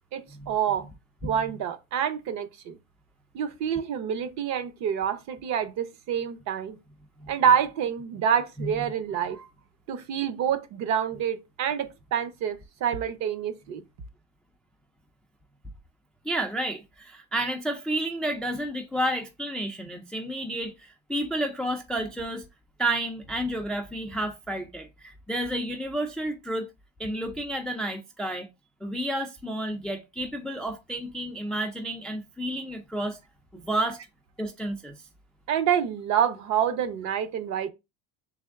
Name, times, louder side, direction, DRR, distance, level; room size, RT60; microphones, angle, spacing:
voice 1, 0.1-0.9 1.2-2.8 3.3-6.8 7.3-9.5 9.9-13.8 35.5-37.7, right 8 dB, 50° right, 0.7 m, -27 dB
voice 2, 16.2-22.5 22.8-26.7 27.0-28.5 28.8-33.2 33.5-34.0 34.4-34.9, right 1 dB, ahead, 0.3 m, -31 dB
3.4 x 3.0 x 3.5 m
cardioid pair, 140°, 35 cm